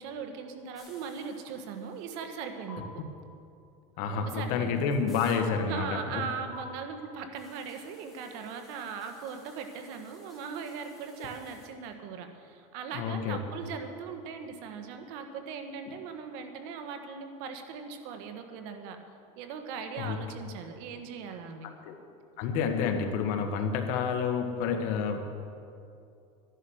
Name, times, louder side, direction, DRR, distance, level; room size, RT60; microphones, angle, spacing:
voice 1, 0.0-3.0 4.3-4.8 5.7-19.0 19.4-21.7, right 6 dB, 70° right, 6 dB, 1.5 m, -39 dB
sound 1, 0.7-2.4 2.7-2.8 4.1-4.2 4.5-5.4 6.5-6.6 7.4-11.7, left 2 dB, ahead, 4.0 m, -57 dB
voice 2, 4.0-6.2 12.9-13.4 20.0-20.2 21.8-21.9 22.4-25.2, left 6 dB, 60° left, 5 dB, 1.6 m, -29 dB
13.0 x 11.0 x 6.4 m, 2.6 s
supercardioid pair, 140°, 15 cm